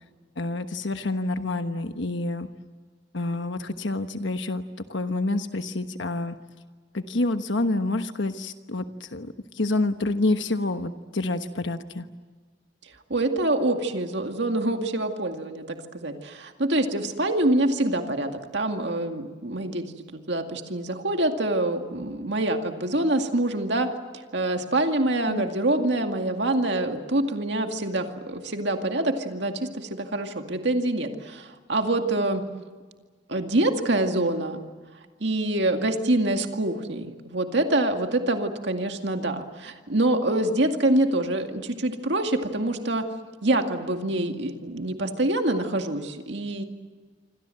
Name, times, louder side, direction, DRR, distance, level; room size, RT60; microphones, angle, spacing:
voice 1, 0.4-2.5 3.1-4.6 4.9-6.4 6.9-12.1 25.3-25.4, left 2 dB, 65° left, 8 dB, 1.2 m, -28 dB
voice 2, 13.1-19.8 20.1-23.9 24.1-32.4 33.3-34.6 35.2-43.1 43.4-46.6, right 1 dB, 60° right, 5 dB, 2.2 m, -25 dB
27.5 x 25.5 x 7.8 m, 1.5 s
head